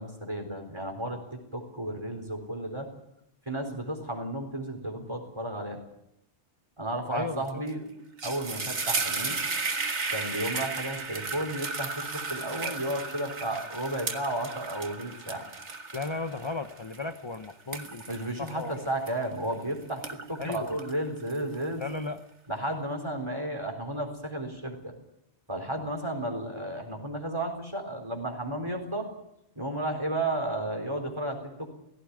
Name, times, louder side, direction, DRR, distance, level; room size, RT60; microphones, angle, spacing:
voice 1, 0.0-2.9 3.5-5.8 6.8-7.8 8.2-9.4 10.1-15.4 18.1-21.9 22.5-24.9 25.5-29.1 29.6-31.7, right 1 dB, 25° right, 4 dB, 4.1 m, -33 dB
voice 2, 7.1-7.6 15.9-18.9 20.4-20.8 21.8-22.2, left 3 dB, 25° left, 8 dB, 0.8 m, -35 dB
sound 1, 7.5-7.7 8.0-19.5 19.9-21.8, right 4 dB, 75° right, 2.0 m, -34 dB
18.0 x 16.5 x 9.6 m, 0.82 s
omnidirectional pair, 1.2 m